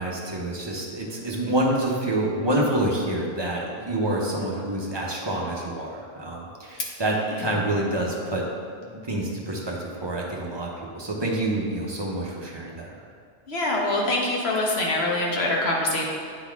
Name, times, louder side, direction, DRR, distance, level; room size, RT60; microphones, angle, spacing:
voice 1, 0.0-8.5 8.9-13.0, right 1 dB, 25° right, -3 dB, 0.7 m, -27 dB
voice 2, 13.5-16.0, left 1 dB, 60° left, -2 dB, 1.2 m, -24 dB
8.7 x 4.1 x 3.5 m, 2.2 s
omnidirectional pair, 1.3 m